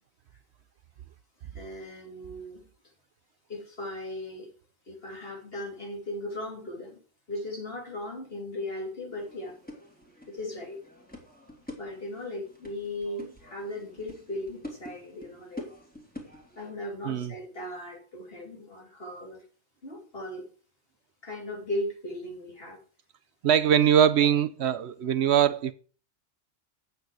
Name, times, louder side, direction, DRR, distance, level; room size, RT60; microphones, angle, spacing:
voice 1, 1.5-2.6 3.5-4.5 4.9-7.0 7.3-9.6 10.3-10.8 11.8-15.6 16.6-19.4 19.8-20.5 21.2-22.8, left 1 dB, 50° left, 3.1 m, -37 dB
sound 1, 9.1-16.7, left 1 dB, 5° left, 2.6 m, -46 dB
voice 2, 23.4-25.7, right 9 dB, 70° right, 0.9 m, -22 dB
8.9 x 8.0 x 4.7 m
omnidirectional pair, 1.2 m